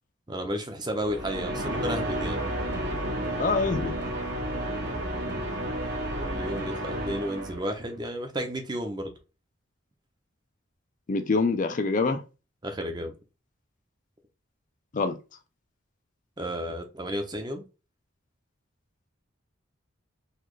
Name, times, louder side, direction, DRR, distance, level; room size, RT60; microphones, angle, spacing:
voice 1, 0.3-2.4 6.2-9.1 12.6-13.1 16.4-17.6, equal, 20° right, 0.6 m, -32 dB
sound 1, 1.0-7.9, right 1 dB, 55° right, 1.0 m, -31 dB
voice 2, 3.4-4.0 11.1-12.2 14.9-15.2, left 4 dB, 40° left, 0.4 m, -25 dB
4.0 x 2.4 x 3.1 m
head